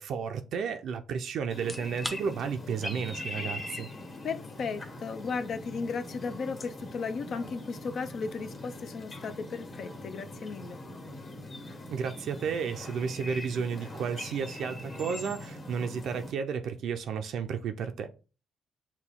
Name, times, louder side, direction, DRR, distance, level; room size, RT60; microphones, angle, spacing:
voice 1, 0.0-3.9 11.9-18.1, right 6 dB, 70° right, 0.5 m, -32 dB
sound 1, 1.5-16.3, left 1 dB, 40° left, 1.4 m, -42 dB
Fizzy Drink Can Opening D, 1.5-16.4, left 1 dB, 10° left, 0.6 m, -52 dB
voice 2, 4.2-10.8, left 5 dB, 60° left, 0.5 m, -35 dB
6.0 x 2.2 x 3.6 m
cardioid pair, 90°, 0 cm